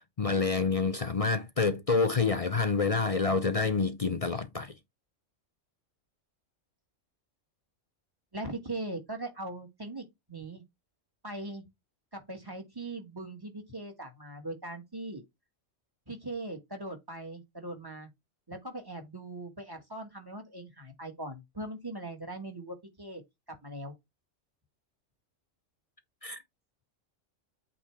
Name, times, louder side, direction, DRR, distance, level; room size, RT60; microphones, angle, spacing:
voice 1, 0.2-4.7 26.2-26.4, left 4 dB, 40° left, 0.5 m, -27 dB
voice 2, 8.3-10.6 11.2-11.6 12.1-15.2 16.1-18.1 18.5-23.2 23.6-23.9, right 2 dB, 15° right, 1.9 m, -40 dB
8.5 x 3.9 x 3.5 m
omnidirectional pair, 1.3 m